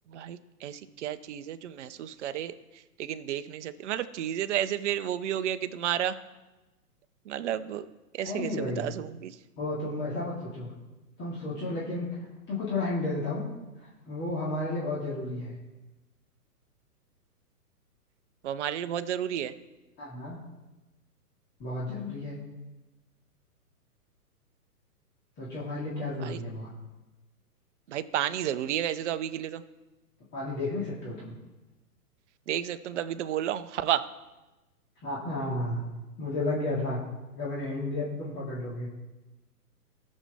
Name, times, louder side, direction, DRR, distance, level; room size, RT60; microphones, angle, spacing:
voice 1, 0.1-2.5 3.0-6.2 7.3-7.9 8.1-9.3 18.4-19.5 26.2-26.4 27.9-29.6 32.5-34.1, right 10 dB, 50° right, 12 dB, 0.7 m, -31 dB
voice 2, 8.2-8.9 9.6-10.7 11.2-12.1 12.5-13.5 13.8-15.5 20.0-20.4 21.6-22.4 25.4-26.7 30.3-31.3 35.0-35.8 36.2-37.0 37.3-38.9, left 2 dB, 20° left, -6 dB, 2.2 m, -32 dB
18.5 x 6.4 x 3.5 m, 1.1 s
hypercardioid pair, 125°, 47 cm